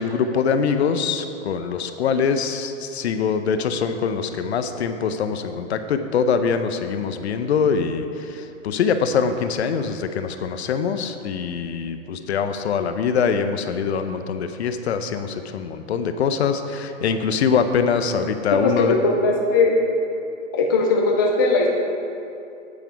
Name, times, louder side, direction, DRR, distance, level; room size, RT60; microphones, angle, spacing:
voice 1, 0.0-19.0, left 6 dB, 55° left, 9 dB, 0.8 m, -23 dB
voice 2, 18.5-19.8 20.5-21.7, left 3 dB, 20° left, 0 dB, 0.3 m, -19 dB
8.6 x 8.6 x 4.7 m, 2.7 s
hypercardioid pair, 145°, 39 cm